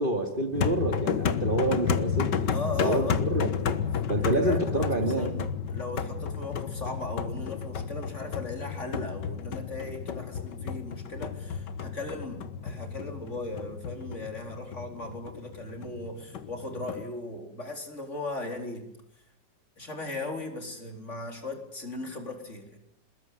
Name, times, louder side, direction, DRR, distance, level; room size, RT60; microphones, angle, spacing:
voice 1, 0.0-2.4 2.8-3.8 4.1-5.5, right 1 dB, 25° right, 5 dB, 3.0 m, -28 dB
sound 1, 0.5-17.0, left 7 dB, 70° left, 2.0 m, -32 dB
voice 2, 2.5-3.5 4.2-18.9 19.8-22.8, left 2 dB, 40° left, 5 dB, 4.5 m, -38 dB
28.0 x 21.0 x 9.4 m, 0.74 s
omnidirectional pair, 2.0 m